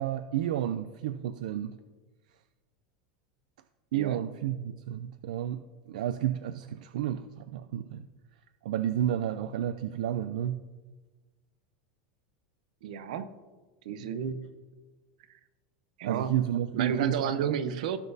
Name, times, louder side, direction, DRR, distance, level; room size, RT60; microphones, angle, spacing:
voice 1, 0.0-1.8 3.9-5.6 5.9-8.1 8.6-10.6 16.1-17.6, right 11 dB, 90° right, 11 dB, 0.4 m, -31 dB
voice 2, 12.8-13.3 13.8-14.5 16.0-16.4 16.7-18.0, right 7 dB, 75° right, 12 dB, 0.8 m, -32 dB
17.0 x 6.0 x 2.7 m, 1.3 s
supercardioid pair, 180°, 4 cm